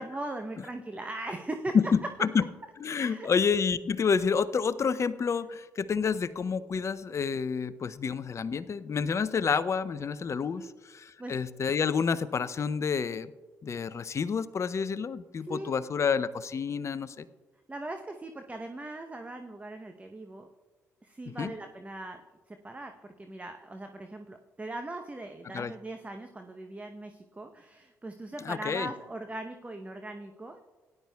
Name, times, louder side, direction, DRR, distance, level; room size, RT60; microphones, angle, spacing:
voice 1, 0.0-1.8 3.0-3.3 10.6-10.7 11.2-11.4 15.4-15.8 17.7-20.5 21.0-22.2 22.5-22.9 23.2-30.6, right 2 dB, 20° right, 5 dB, 0.8 m, -40 dB
voice 2, 1.7-2.5 2.8-13.3 13.6-17.3 21.3-21.5 25.5-25.7 28.4-28.9, left 6 dB, 40° left, 15 dB, 0.6 m, -29 dB
17.5 x 11.0 x 2.3 m, 1.3 s
hypercardioid pair, 45°, 7 cm